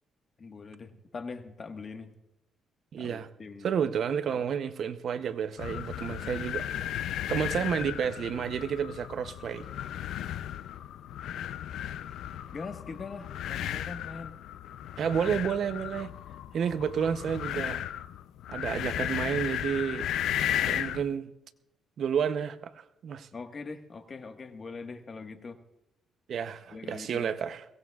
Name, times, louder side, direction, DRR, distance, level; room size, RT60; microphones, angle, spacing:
voice 1, 0.4-2.1 3.0-3.7 4.3-4.4 12.5-14.3 23.3-25.6 26.7-27.3, left 4 dB, 40° left, 1.5 m, -42 dB
voice 2, 2.9-3.3 3.6-6.7 7.3-9.6 15.0-16.1 16.5-17.8 18.5-20.1 20.6-21.3 22.0-23.3 26.3-27.6, right 7 dB, 60° right, 0.7 m, -30 dB
sound 1, 5.6-21.1, left 11 dB, 80° left, 0.4 m, -35 dB
22.0 x 18.0 x 2.4 m
cardioid pair, 90°, 0 cm